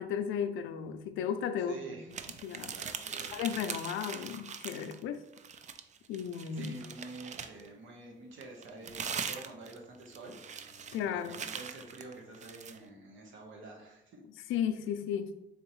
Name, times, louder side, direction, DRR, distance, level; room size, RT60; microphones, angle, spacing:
voice 1, 0.0-1.8 2.4-2.8 3.3-5.2 6.1-6.8 10.9-11.4 14.5-15.3, left 8 dB, 90° left, 10 dB, 0.4 m, -34 dB
voice 2, 1.7-2.2 2.7-3.4 6.5-10.4 11.0-14.2, right 2 dB, 75° right, 0 dB, 1.1 m, -48 dB
sound 1, 2.1-5.0 5.3-7.7 8.4-12.8, right 7 dB, 35° right, 0.4 m, -41 dB
3.9 x 3.6 x 3.0 m, 0.89 s
cardioid pair, 90°, 20 cm